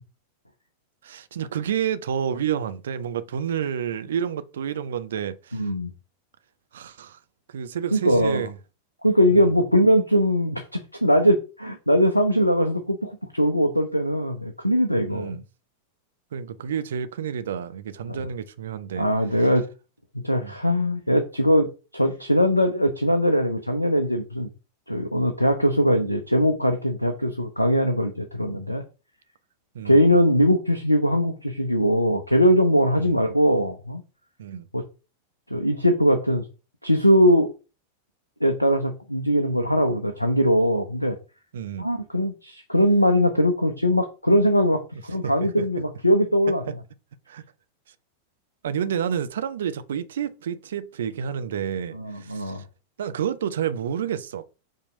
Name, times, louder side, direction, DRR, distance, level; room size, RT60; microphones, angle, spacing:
voice 1, 1.0-5.7 6.7-7.2 7.5-8.5 9.3-9.5 15.1-15.4 16.3-19.1 20.4-20.5 29.7-30.1 33.0-33.2 34.4-34.7 41.5-41.9 45.2-45.6 47.3-47.4 48.6-52.6 53.0-54.4, right 8 dB, 60° right, 0.6 m, -29 dB
voice 2, 5.5-5.9 7.9-8.5 9.0-15.4 18.1-18.3 19.0-19.7 20.2-24.5 24.9-28.8 29.8-34.0 34.7-34.8 35.5-36.4 36.8-37.5 38.4-41.2 41.8-46.6 51.9-52.6, equal, 90° left, 0.7 m, -21 dB
5.5 x 3.3 x 5.2 m
figure-of-eight pair, 90°, 0 cm